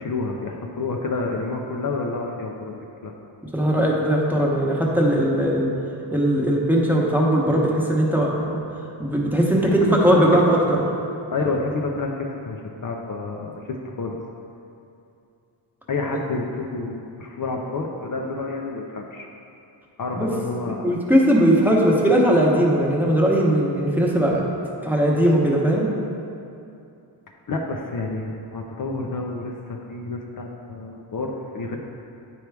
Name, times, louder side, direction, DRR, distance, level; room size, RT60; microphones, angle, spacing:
voice 1, 0.0-3.1 9.6-10.2 11.3-14.2 15.9-19.3 20.0-21.0 27.5-31.8, left 3 dB, 45° left, 0 dB, 0.6 m, -29 dB
voice 2, 3.5-5.7 6.1-8.6 9.0-10.6 20.2-20.3 20.8-24.4 24.8-25.9, right 1 dB, 5° right, -3 dB, 1.0 m, -19 dB
9.2 x 4.6 x 3.4 m, 2.6 s
wide cardioid pair, 100°, 44 cm